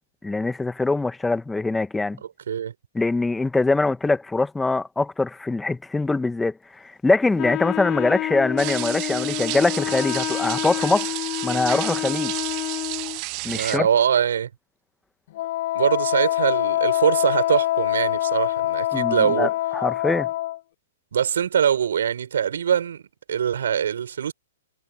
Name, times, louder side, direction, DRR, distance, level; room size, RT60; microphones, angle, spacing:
voice 1, 0.2-2.2 2.9-11.1 11.4-12.3 13.4-13.9 18.9-20.3, left 3 dB, 5° left, 1.4 m, -23 dB
Wind instrument woodwind instrument, 7.4-13.2, left 18 dB, 30° left, 1.7 m, -29 dB
sound 1, 8.6-13.8, right 28 dB, 40° right, 0.9 m, -31 dB
voice 2, 13.5-14.5 15.7-19.5 21.1-23.0 23.3-24.3, right 8 dB, 70° right, 6.5 m, -23 dB
Wind instrument woodwind instrument 2, 15.4-20.6, left 15 dB, 50° left, 0.4 m, -24 dB
hypercardioid pair, 120°, 0 cm